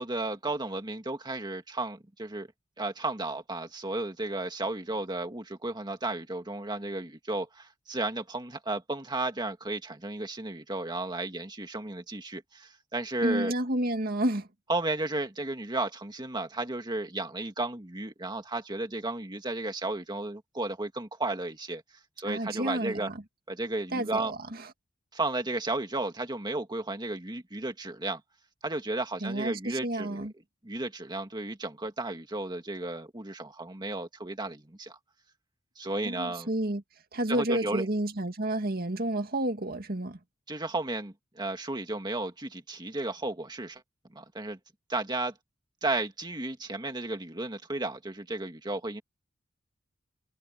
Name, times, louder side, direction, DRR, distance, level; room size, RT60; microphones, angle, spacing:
voice 1, 0.0-2.5 2.8-13.5 14.7-21.8 22.2-23.1 23.5-24.3 25.1-28.2 28.6-30.3 30.6-35.0 35.8-36.5 37.3-37.9 40.5-43.8 44.1-44.6 44.9-45.3 45.8-49.0, right 2 dB, 20° right, 2.0 m, -33 dB
voice 2, 13.2-14.5 22.2-23.1 23.9-24.4 29.2-30.3 36.0-36.8 37.1-40.2, right 1 dB, 50° right, 2.1 m, -30 dB
head